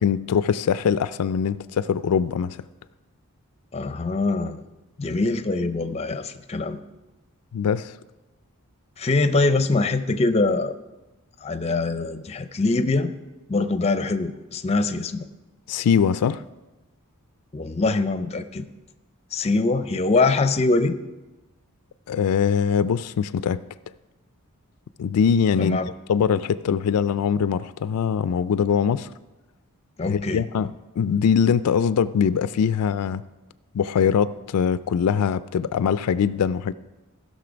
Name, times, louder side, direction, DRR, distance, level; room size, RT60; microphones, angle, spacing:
voice 1, 0.0-2.6 7.5-7.9 15.7-16.4 22.1-23.6 25.0-25.8 26.1-29.1 30.1-33.2 33.7-36.7, left 7 dB, 90° left, 0.4 m, -22 dB
voice 2, 3.7-4.6 5.0-6.8 9.0-10.7 11.4-13.1 13.5-15.2 17.5-18.6 19.3-20.9 25.6-25.9 30.0-30.4, left 3 dB, 30° left, 0.5 m, -23 dB
15.5 x 6.4 x 5.1 m
head